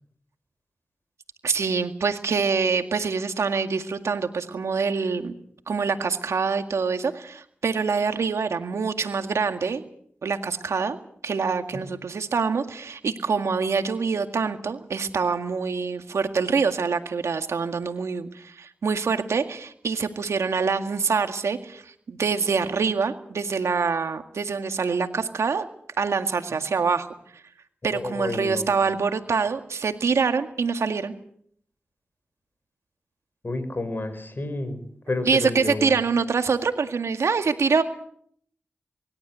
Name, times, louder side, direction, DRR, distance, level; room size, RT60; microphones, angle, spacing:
voice 1, 1.4-5.3 5.7-9.8 10.2-11.0 11.2-25.7 26.0-27.1 27.3-27.4 27.8-31.1 35.3-37.8, right 5 dB, 85° right, 7 dB, 2.0 m, -25 dB
voice 2, 27.9-28.9 33.4-36.1, left 2 dB, 45° left, 11 dB, 5.6 m, -31 dB
24.5 x 13.0 x 9.4 m, 0.64 s
cardioid pair, 45°, 5 cm